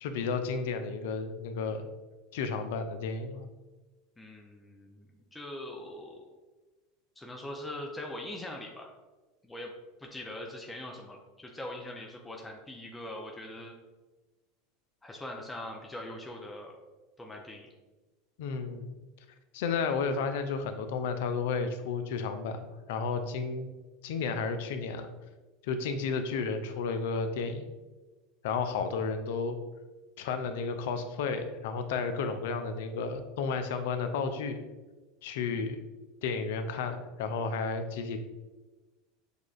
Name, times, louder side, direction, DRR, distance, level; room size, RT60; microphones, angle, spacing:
voice 1, 0.0-1.9 2.3-3.5 18.4-18.9 19.5-23.7 24.0-25.1 25.6-27.7 28.4-29.6 30.2-34.6 35.2-35.8 36.2-38.2, left 5 dB, 70° left, 8 dB, 0.4 m, -32 dB
voice 2, 4.2-6.3 7.2-8.9 9.4-9.7 10.0-13.7 15.0-16.8 17.2-17.7, left 1 dB, 10° left, 0 dB, 0.6 m, -42 dB
6.5 x 2.4 x 2.4 m, 1.2 s
hypercardioid pair, 85°, 0 cm